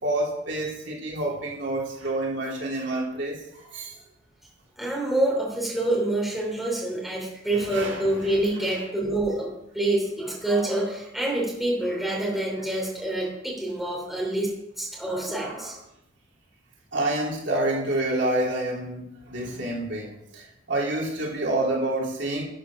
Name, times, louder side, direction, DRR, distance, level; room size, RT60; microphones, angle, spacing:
voice 1, 0.0-3.9 7.7-8.1 8.6-8.7 16.9-22.4, right 1 dB, 65° right, -3 dB, 3.2 m, -28 dB
voice 2, 4.8-15.8, right 1 dB, ahead, -3 dB, 3.1 m, -27 dB
12.0 x 7.1 x 6.0 m, 0.81 s
head